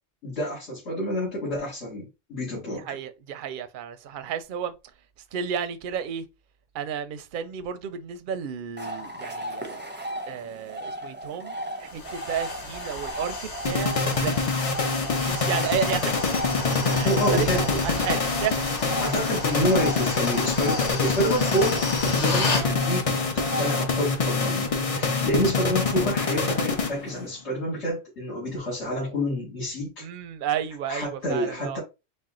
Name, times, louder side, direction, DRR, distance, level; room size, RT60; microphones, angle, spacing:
voice 1, 0.2-3.0 17.0-18.0 19.0-30.0 30.9-31.8, equal, 75° left, 2.4 m, -28 dB
voice 2, 2.8-4.7 5.3-6.2 6.7-9.9 10.3-14.6 15.2-16.3 16.8-18.7 30.0-31.8, right 8 dB, 60° right, 0.6 m, -32 dB
sound 1, 8.8-27.3, right 1 dB, 15° right, 0.5 m, -36 dB
sound 2, 11.8-22.7, left 3 dB, 90° left, 1.4 m, -34 dB
sound 3, 13.7-27.3, left 4 dB, 40° left, 0.5 m, -26 dB
4.3 x 2.2 x 3.7 m
omnidirectional pair, 1.2 m